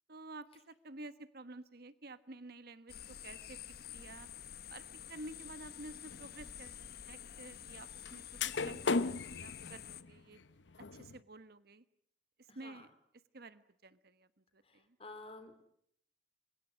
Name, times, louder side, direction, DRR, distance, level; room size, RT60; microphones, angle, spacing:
voice 1, 0.1-3.6 3.9-4.3 4.7-6.8 7.1-10.4 10.9-11.8 12.5-12.9 13.3-14.3 14.5-15.0, right 2 dB, 60° right, 13 dB, 1.3 m, -51 dB
sound 1, 2.9-10.0, left 9 dB, 55° left, 1.0 m, -49 dB
sound 2, 6.1-6.3 8.1-8.2 8.4-11.2, left 4 dB, 85° left, 0.9 m, -36 dB
voice 2, 12.5-12.9 14.6-15.5, left 2 dB, 35° left, 9 dB, 3.4 m, -51 dB
29.5 x 23.5 x 6.3 m, 0.69 s
head